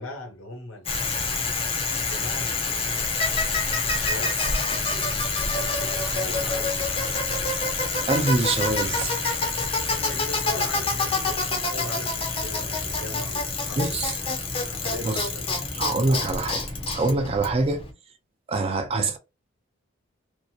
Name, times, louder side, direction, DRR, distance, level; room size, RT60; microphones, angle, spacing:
voice 1, 0.0-1.4 1.9-3.1 3.8-7.5 10.1-13.9 14.5-15.7, left 1 dB, 85° left, 1.1 m, -40 dB
Bicycle, 0.9-17.9, left 3 dB, 30° left, 0.5 m, -27 dB
voice 2, 8.1-9.4 13.8-14.1 15.0-15.2 15.7-16.6 16.9-17.8 18.5-19.2, right 2 dB, 30° right, 0.4 m, -25 dB
2.6 x 2.0 x 2.4 m
head